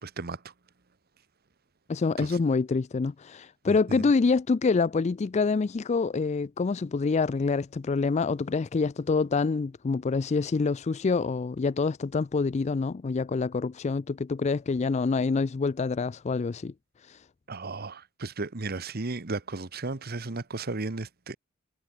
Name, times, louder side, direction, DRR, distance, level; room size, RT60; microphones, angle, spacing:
voice 1, 0.0-0.4 2.2-2.3 3.7-4.0 17.5-21.4, right 3 dB, 50° right, 1.1 m, -34 dB
voice 2, 1.9-16.7 17.0-17.2, left 4 dB, 35° left, 0.4 m, -26 dB
head